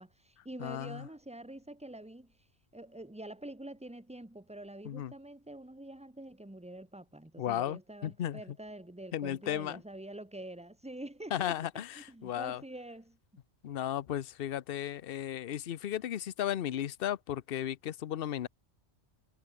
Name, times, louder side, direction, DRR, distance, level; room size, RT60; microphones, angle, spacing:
voice 1, 0.0-2.3 2.7-13.2, right 1 dB, 5° right, 1.5 m, -46 dB
voice 2, 0.6-1.0 4.8-5.1 7.4-8.4 9.1-9.8 11.3-12.6 13.6-18.5, left 11 dB, 60° left, 0.8 m, -35 dB
omnidirectional pair, 1.2 m